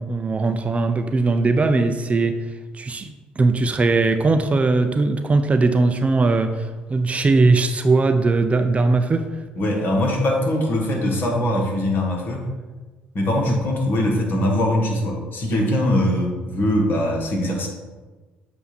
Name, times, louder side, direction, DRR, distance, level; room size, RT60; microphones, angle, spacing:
voice 1, 0.0-2.4 2.7-9.3 13.5-13.6, right 3 dB, 30° right, 8 dB, 0.6 m, -19 dB
voice 2, 9.6-12.5 13.1-17.7, left 1 dB, 55° left, 0 dB, 1.7 m, -22 dB
7.8 x 2.7 x 5.9 m, 1.3 s
hypercardioid pair, 55°, 4 cm